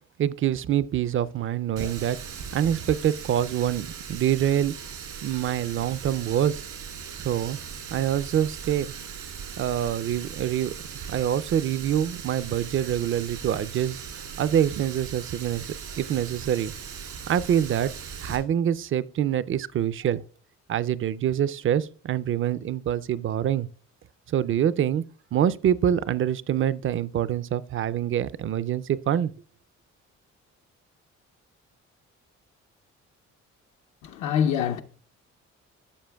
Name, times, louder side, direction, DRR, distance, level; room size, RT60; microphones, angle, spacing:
voice 1, 0.2-2.2 2.5-4.7 5.2-6.6 7.2-7.6 7.9-8.9 9.6-10.7 11.1-14.0 14.4-16.7 17.3-17.9 18.2-20.2 20.7-23.7 24.3-25.0 25.3-29.3, right 10 dB, 45° right, 0.4 m, -25 dB
Water tap faucet, 1.8-18.4, right 7 dB, 90° right, 2.5 m, -39 dB
voice 2, 34.0-34.8, left 8 dB, 75° left, 0.7 m, -25 dB
12.5 x 6.9 x 2.2 m
cardioid pair, 90°, 30 cm